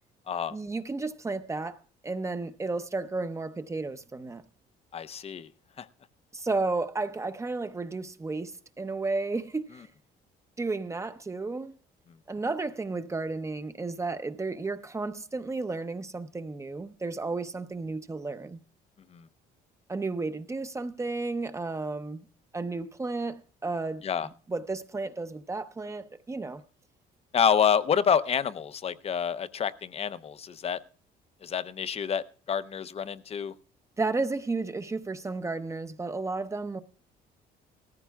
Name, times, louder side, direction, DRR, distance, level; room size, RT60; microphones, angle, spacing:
voice 1, 0.5-4.4 6.3-9.9 10.6-11.7 12.3-18.6 19.9-22.3 22.5-24.0 24.5-26.6 34.0-36.8, right 3 dB, 15° right, 0.7 m, -33 dB
voice 2, 4.9-5.5 5.8-5.9 19.1-19.2 24.0-24.3 27.3-30.8 31.4-33.5, left 7 dB, 35° left, 0.6 m, -28 dB
18.5 x 14.5 x 2.3 m
cardioid pair, 110°, 17 cm